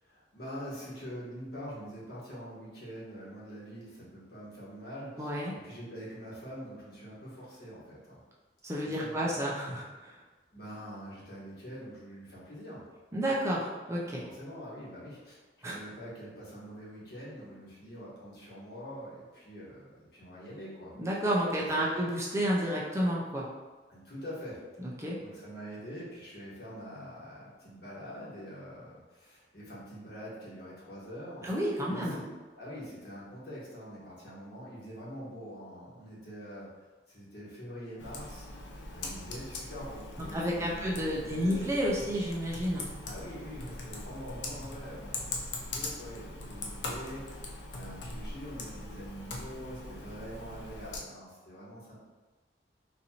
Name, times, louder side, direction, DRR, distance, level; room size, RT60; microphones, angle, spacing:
voice 1, 0.0-5.3 5.6-8.2 8.8-9.4 10.5-12.8 14.0-20.9 21.6-21.7 21.9-22.0 23.9-24.9 25.2-31.5 31.8-36.7 37.1-38.5 38.9-41.7 43.0-52.0, equal, 65° left, -7 dB, 1.3 m, -45 dB
voice 2, 5.2-5.5 8.6-10.1 13.1-14.2 15.6-15.8 21.0-23.5 25.0-25.2 31.4-32.1 40.3-42.9, equal, 15° right, -4 dB, 0.5 m, -30 dB
Computer keyboard, 38.0-51.0, left 2 dB, 85° left, 0.6 m, -41 dB
4.1 x 2.6 x 2.8 m, 1.3 s
head